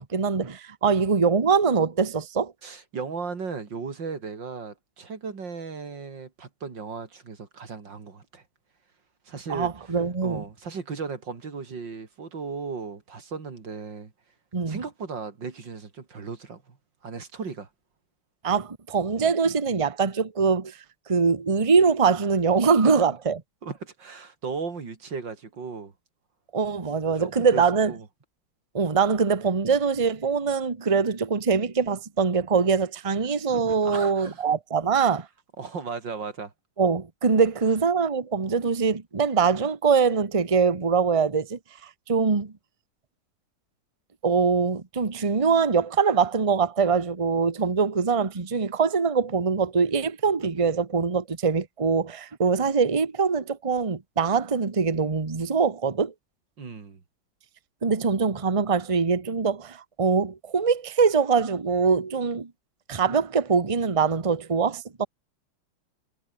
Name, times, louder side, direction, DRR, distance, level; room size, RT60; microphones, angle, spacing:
voice 1, 0.0-2.5 9.5-10.4 14.5-14.8 18.4-20.8 21.1-23.4 26.5-27.9 28.7-35.3 36.8-42.5 44.2-56.1 57.8-62.5 62.9-65.1, right 5 dB, 20° right, 1.2 m, -23 dB
voice 2, 2.6-8.4 9.3-9.7 10.2-14.1 14.7-16.8 17.0-17.7 22.8-23.1 23.6-25.9 27.2-28.1 33.8-34.4 35.6-36.5 56.6-57.0, right 5 dB, 60° right, 3.6 m, -36 dB
omnidirectional pair, 2.3 m